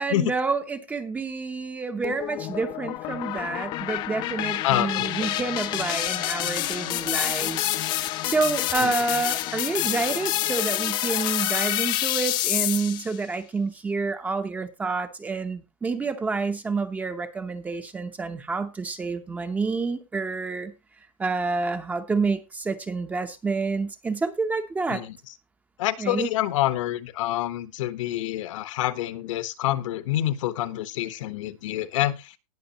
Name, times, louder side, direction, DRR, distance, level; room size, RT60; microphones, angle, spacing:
voice 1, 0.0-7.7 8.2-20.7 21.2-25.0 26.0-26.3, right 4 dB, 10° right, 0.8 m, -28 dB
sound 1, 2.0-13.2, left 14 dB, 25° left, 0.6 m, -28 dB
voice 2, 4.6-5.3 8.8-8.9 24.9-25.1 25.8-32.3, left 14 dB, 60° left, 1.2 m, -27 dB
19.0 x 6.4 x 3.0 m
supercardioid pair, 170°, 18 cm